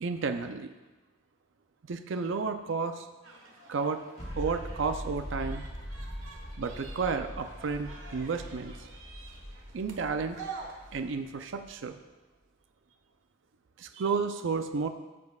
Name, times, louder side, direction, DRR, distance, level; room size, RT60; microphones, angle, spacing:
voice 1, 0.0-0.7 1.9-3.1 3.7-4.0 4.3-5.6 6.6-8.7 9.7-10.5 10.9-12.0 13.8-14.9, right 5 dB, 65° right, 7 dB, 0.5 m, -32 dB
sound 1, 3.2-11.1, right 4 dB, 80° right, 1.4 m, -48 dB
sound 2, 4.2-11.7, equal, 40° left, 3.0 m, -42 dB
13.0 x 8.4 x 2.4 m, 1.2 s
head